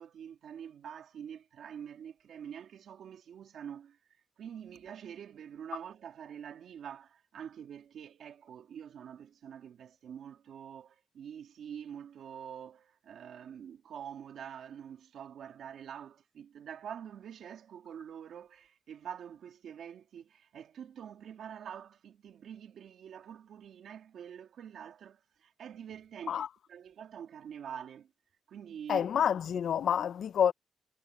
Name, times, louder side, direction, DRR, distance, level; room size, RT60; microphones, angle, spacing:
voice 1, 0.0-4.0 4.4-28.1 28.5-29.1, right 8 dB, 85° right, 2.3 m, -46 dB
voice 2, 28.9-30.5, left 8 dB, 80° left, 0.5 m, -28 dB
cardioid pair, 75°, 0 cm